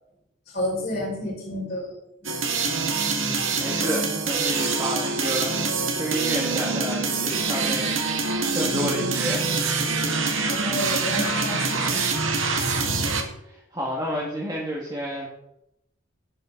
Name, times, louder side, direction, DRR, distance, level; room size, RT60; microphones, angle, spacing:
voice 1, 0.5-1.9 10.5-12.1, left 1 dB, 50° left, -4 dB, 5.5 m, -30 dB
sound 1, 2.2-13.2, right 4 dB, 90° right, 1.9 m, -25 dB
voice 2, 3.1-9.5 12.5-12.9 13.4-15.3, equal, 20° right, -3 dB, 2.0 m, -31 dB
12.5 x 10.5 x 4.0 m, 0.82 s
head